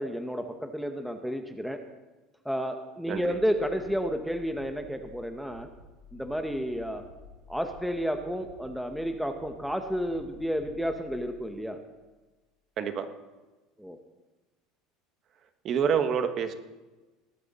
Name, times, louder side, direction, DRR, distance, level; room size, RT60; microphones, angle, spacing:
voice 1, 0.0-1.8 2.4-5.7 6.1-7.0 7.5-11.8 13.8-14.0, equal, ahead, 5 dB, 0.9 m, -31 dB
sound 1, 3.0-12.1, left 2 dB, 60° right, 6.1 m, -52 dB
voice 2, 15.6-16.5, right 7 dB, 35° right, 8 dB, 1.2 m, -27 dB
18.0 x 12.5 x 4.1 m, 1.2 s
cardioid pair, 150°, 0 cm